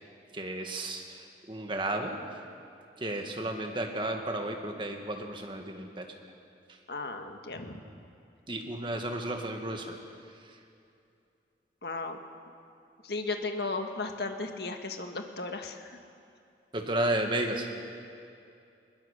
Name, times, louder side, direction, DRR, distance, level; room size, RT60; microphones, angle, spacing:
voice 1, 0.3-2.4 3.0-6.1 6.7-6.8 8.5-10.0 10.4-10.6 16.7-17.7, right 1 dB, 25° right, 3 dB, 1.9 m, -33 dB
voice 2, 6.9-7.8 11.8-12.2 13.0-16.0, left 3 dB, 60° left, 5 dB, 1.7 m, -35 dB
21.0 x 21.0 x 6.7 m, 2.5 s
head